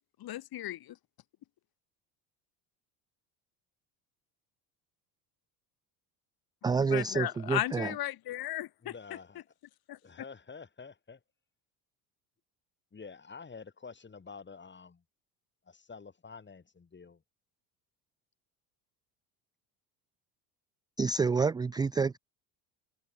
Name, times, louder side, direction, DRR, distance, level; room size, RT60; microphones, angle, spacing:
voice 1, 0.2-1.0 6.9-8.9 9.9-10.0, left 13 dB, 55° left, 4.0 m, -35 dB
voice 2, 6.6-7.9 21.0-22.2, right 5 dB, 10° right, 0.3 m, -28 dB
voice 3, 8.8-9.4 10.0-11.2 12.9-15.0 15.7-17.2, left 5 dB, 25° left, 6.0 m, -48 dB
supercardioid pair, 85°, 43 cm